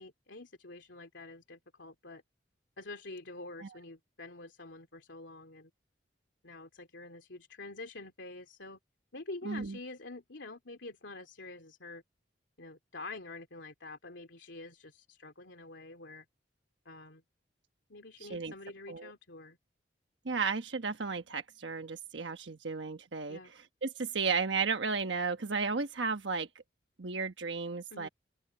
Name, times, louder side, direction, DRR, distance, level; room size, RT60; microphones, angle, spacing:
voice 1, 0.0-2.2 2.8-5.7 6.4-8.8 9.1-12.0 12.6-16.2 16.8-17.2 17.9-19.6 23.3-23.5 27.9-28.1, left 2 dB, 85° left, 2.8 m, -47 dB
voice 2, 9.4-9.8 18.2-18.5 18.9-19.1 20.2-26.5 27.0-28.1, right 5 dB, 75° right, 1.2 m, -34 dB
open air
head